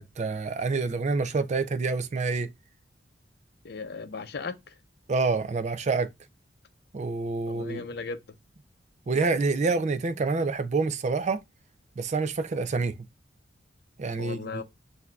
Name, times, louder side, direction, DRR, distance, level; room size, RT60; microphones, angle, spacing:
voice 1, 0.0-2.5 5.1-6.1 6.9-7.8 9.1-11.4 12.0-13.0 14.0-14.6, right 4 dB, 40° right, 0.4 m, -27 dB
voice 2, 3.6-4.6 7.5-8.2 14.2-14.6, left 4 dB, 60° left, 0.6 m, -36 dB
7.6 x 2.7 x 2.3 m
head